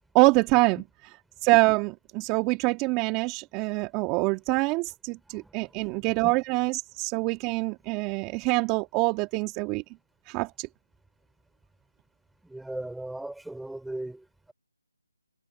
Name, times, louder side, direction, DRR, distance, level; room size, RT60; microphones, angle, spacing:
voice 1, 0.1-0.8 1.4-9.8 10.3-10.7, right 25 dB, 15° right, 1.7 m, -25 dB
voice 2, 5.2-6.3 12.4-14.5, right 1 dB, ahead, 4.8 m, -39 dB
figure-of-eight pair, 155°, 0 cm